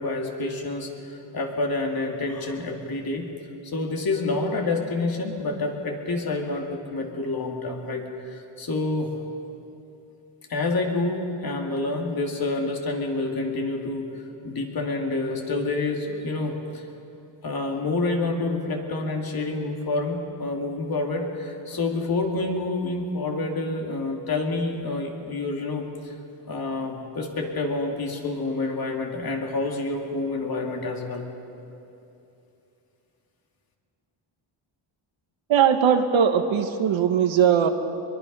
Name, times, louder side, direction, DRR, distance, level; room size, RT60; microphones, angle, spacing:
voice 1, 0.0-3.3 3.6-9.2 10.5-14.1 14.4-16.8 17.4-26.1 26.5-31.3, left 2 dB, 45° left, 1 dB, 2.7 m, -28 dB
voice 2, 35.5-37.7, right 8 dB, 65° right, 7 dB, 1.5 m, -20 dB
22.5 x 22.5 x 5.6 m, 2.8 s
cardioid pair, 120°, 49 cm